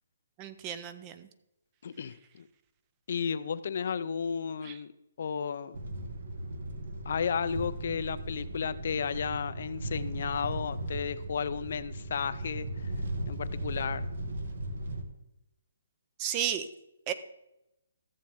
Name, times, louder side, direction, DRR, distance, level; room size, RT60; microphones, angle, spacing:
voice 1, 0.4-1.3 4.6-4.8 16.2-16.7 17.1-17.2, right 9 dB, 20° right, 11 dB, 0.5 m, -33 dB
voice 2, 1.8-2.5 3.1-4.9 5.2-5.8 7.1-12.7 13.3-14.1, left 6 dB, 50° left, 14 dB, 0.5 m, -33 dB
sound 1, 5.7-15.0, right 1 dB, 70° right, 1.4 m, -37 dB
14.0 x 7.5 x 3.6 m, 0.88 s
hypercardioid pair, 165°, 0 cm